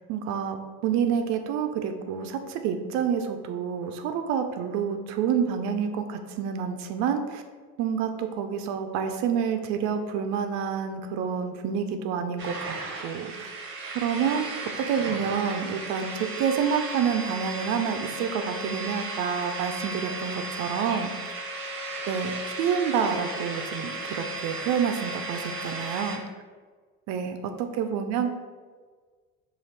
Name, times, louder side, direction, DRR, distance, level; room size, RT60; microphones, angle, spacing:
voice 1, 0.0-7.4 7.8-13.5 13.9-21.1 22.1-22.3 22.6-26.2 27.1-28.3, right 7 dB, 65° right, 6 dB, 0.5 m, -28 dB
sound 1, 12.4-26.2, right 2 dB, 45° right, 0.8 m, -35 dB
4.0 x 2.5 x 3.2 m, 1.5 s
supercardioid pair, 80°, 30 cm